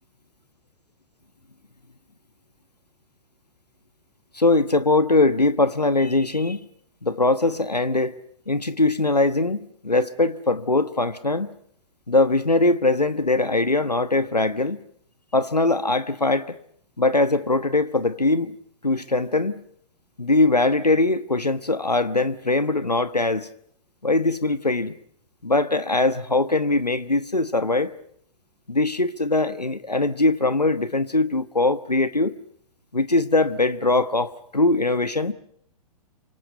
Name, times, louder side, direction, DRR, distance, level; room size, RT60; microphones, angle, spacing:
voice 1, 4.3-6.6 7.0-8.2 8.5-11.5 12.1-14.8 15.3-16.6 17.0-18.6 18.8-19.6 20.2-23.5 24.0-24.9 25.4-27.9 28.7-32.3 32.9-35.3, left 2 dB, 90° left, 13 dB, 1.2 m, -21 dB
29.5 x 26.5 x 5.5 m, 0.66 s
figure-of-eight pair, 115°, 20 cm